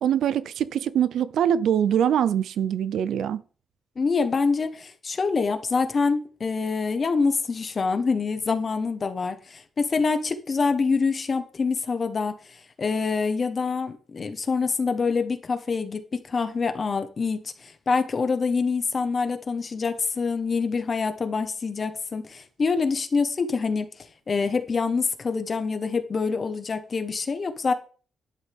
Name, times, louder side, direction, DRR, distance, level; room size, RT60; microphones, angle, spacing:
voice 1, 0.0-3.4, right 9 dB, 85° right, 0.5 m, -23 dB
voice 2, 4.0-23.9 24.3-27.7, left 4 dB, 35° left, 1.3 m, -26 dB
11.5 x 11.0 x 3.6 m
cardioid pair, 135°, 0 cm